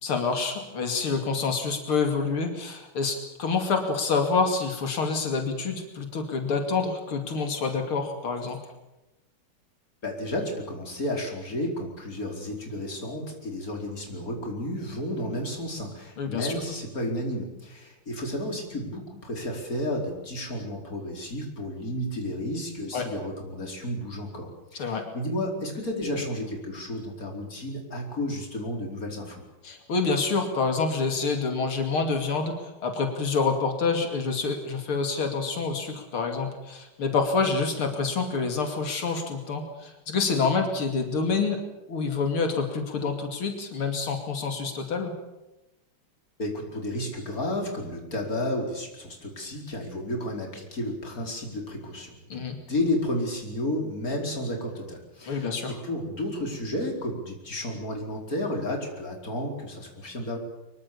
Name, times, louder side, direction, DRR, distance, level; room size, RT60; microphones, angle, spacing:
voice 1, 0.0-8.6 16.2-16.5 22.9-23.1 24.8-25.0 29.6-32.5 32.8-41.6 41.9-45.1 52.3-52.6 55.3-55.8, left 4 dB, 85° left, 4 dB, 3.4 m, -27 dB
voice 2, 10.0-29.4 46.4-60.4, left 1 dB, 40° left, 2 dB, 5.2 m, -32 dB
24.5 x 23.0 x 7.1 m, 0.96 s
omnidirectional pair, 2.3 m